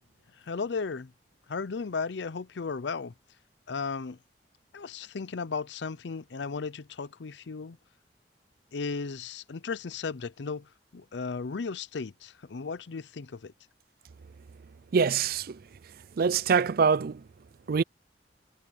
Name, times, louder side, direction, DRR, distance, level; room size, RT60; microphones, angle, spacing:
voice 1, 0.4-1.1 1.5-3.1 3.7-4.2 4.7-7.8 8.7-13.5, left 4 dB, 75° left, 0.6 m, -35 dB
voice 2, 14.9-15.6 16.2-17.2 17.7-17.8, right 5 dB, 55° right, 0.4 m, -24 dB
head